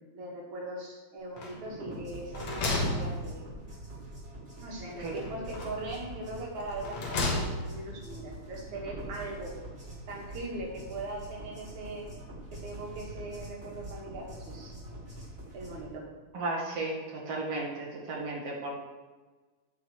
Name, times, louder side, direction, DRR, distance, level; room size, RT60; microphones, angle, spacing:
voice 1, 0.1-3.4 4.6-9.5 10.1-12.1 12.5-14.8 15.5-16.1, right 2 dB, 80° right, -3 dB, 3.2 m, -40 dB
sound 1, 1.4-1.9 2.2-3.8 5.0-5.9 6.6-7.9, left 2 dB, 65° left, 2.5 m, -33 dB
sound 2, 1.7-15.8, right 1 dB, 20° right, 3.5 m, -44 dB
voice 2, 16.3-18.7, right 2 dB, 55° right, -3 dB, 2.5 m, -34 dB
15.0 x 5.6 x 3.2 m, 1.3 s
omnidirectional pair, 3.3 m